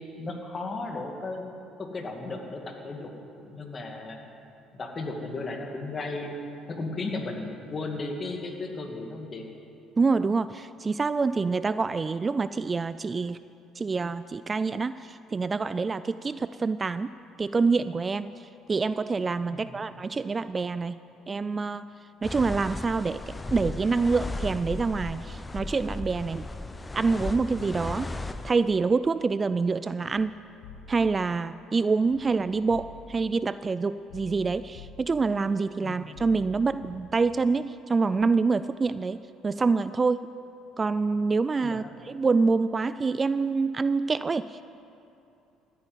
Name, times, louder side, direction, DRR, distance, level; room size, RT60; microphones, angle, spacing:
voice 1, 0.2-1.4 1.8-3.1 3.4-4.2 4.7-6.4 6.7-9.4 19.5-19.8 35.8-36.0 41.6-41.9, left 3 dB, 35° left, 2 dB, 2.4 m, -35 dB
voice 2, 10.0-13.4 13.8-17.1 17.4-21.0 21.3-21.9 22.2-23.2 23.5-26.5 26.9-28.1 28.4-30.4 30.9-40.3 40.8-44.6, right 4 dB, 25° right, 14 dB, 0.3 m, -26 dB
sound 1, 22.2-28.5, left 2 dB, 15° left, 0.7 m, -36 dB
sound 2, 30.2-31.2 32.0-33.2 34.1-35.3 36.1-37.4 38.2-38.3, left 4 dB, 85° left, 1.2 m, -48 dB
14.5 x 9.2 x 9.7 m, 2.7 s
supercardioid pair, 95°, 0 cm